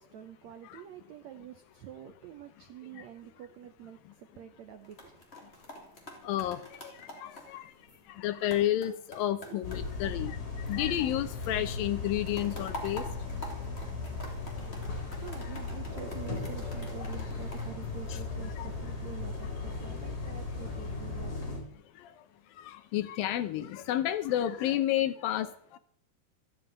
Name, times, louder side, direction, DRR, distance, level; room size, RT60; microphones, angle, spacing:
voice 1, 0.0-5.2 9.4-9.7 11.1-11.2 12.3-12.6 13.0-13.2 14.6-14.8 15.2-21.3, right 10 dB, 75° right, 7 dB, 1.6 m, -47 dB
sound 1, 4.7-11.2 11.4-18.6 19.1-19.4, left 1 dB, 20° left, 2.7 m, -47 dB
voice 2, 6.2-7.7 8.1-13.1 13.4-13.5 15.4-15.6 17.0-17.1 18.1-18.2 18.5-18.7 22.0-22.3 22.5-25.8, left 12 dB, 75° left, 11 dB, 2.4 m, -32 dB
sound 2, 9.6-21.6, left 3 dB, 40° left, 4.5 m, -37 dB
14.0 x 7.5 x 9.3 m, 0.66 s
omnidirectional pair, 4.4 m